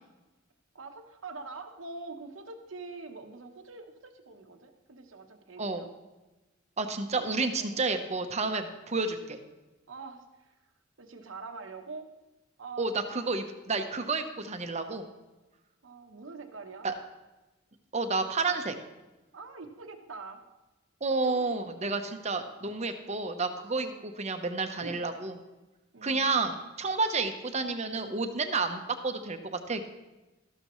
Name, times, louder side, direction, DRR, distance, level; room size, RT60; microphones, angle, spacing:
voice 1, 0.7-5.9 7.5-7.8 9.9-10.5 11.0-12.1 12.6-13.0 15.8-16.9 19.3-20.4 21.2-22.0 23.7-24.0 24.8-25.0 25.9-26.4, right 4 dB, 85° right, 5 dB, 1.0 m, -44 dB
voice 2, 6.8-9.4 12.8-15.1 16.8-16.9 17.9-18.8 21.0-23.9 24.2-25.3 26.0-29.9, right 3 dB, 35° right, 7 dB, 0.9 m, -30 dB
13.5 x 12.0 x 3.1 m, 1.1 s
head